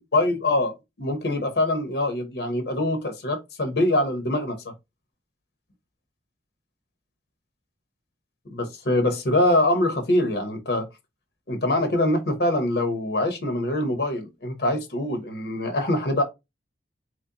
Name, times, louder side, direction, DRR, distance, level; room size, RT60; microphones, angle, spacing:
voice 1, 0.0-4.7 8.5-10.9 11.5-16.2, left 1 dB, 60° left, 0.8 m, -24 dB
3.8 x 3.1 x 2.7 m
head